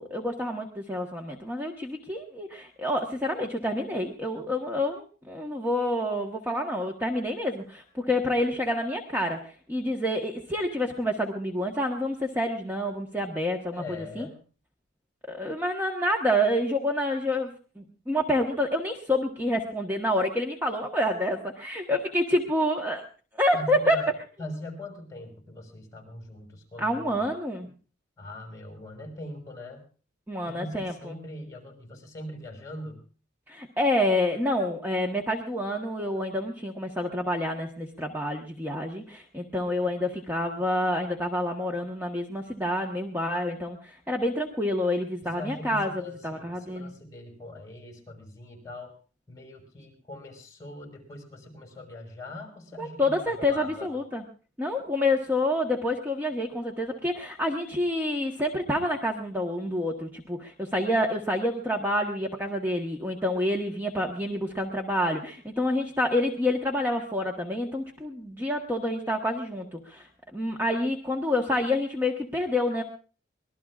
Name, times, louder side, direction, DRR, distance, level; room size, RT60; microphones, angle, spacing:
voice 1, 0.0-13.8 14.2-14.3 15.3-17.5 17.8-23.0 23.4-24.0 26.8-27.7 30.3-30.9 33.5-45.9 46.2-46.9 52.8-54.2 54.6-70.1 70.3-72.8, left 1 dB, 10° right, 1 dB, 1.3 m, -28 dB
voice 2, 13.7-14.4 23.5-24.1 24.4-27.3 28.2-29.9 30.4-33.0 45.2-48.9 49.3-53.9, left 1 dB, 15° left, 2 dB, 5.4 m, -41 dB
25.0 x 20.0 x 2.5 m, 0.39 s
head